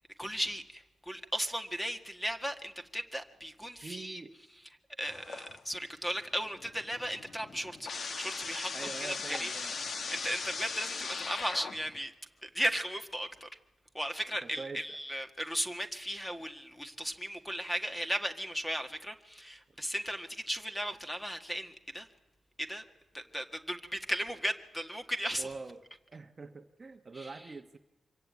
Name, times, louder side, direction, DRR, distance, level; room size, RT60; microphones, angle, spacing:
voice 1, 0.2-4.2 5.0-7.9 8.2-8.7 9.0-9.5 10.1-12.1 12.4-13.5 13.9-22.1 22.6-22.8 23.1-25.5 27.1-27.3, equal, 5° left, 7 dB, 1.7 m, -36 dB
voice 2, 3.8-4.3 8.7-9.8 14.4-15.0 25.4-25.8 26.1-27.8, right 4 dB, 30° right, 7 dB, 1.1 m, -44 dB
sound 1, 5.1-5.9 6.2-12.0, left 4 dB, 50° left, 1.3 m, -39 dB
25.5 x 23.0 x 9.4 m, 0.96 s
wide cardioid pair, 160°, 0 cm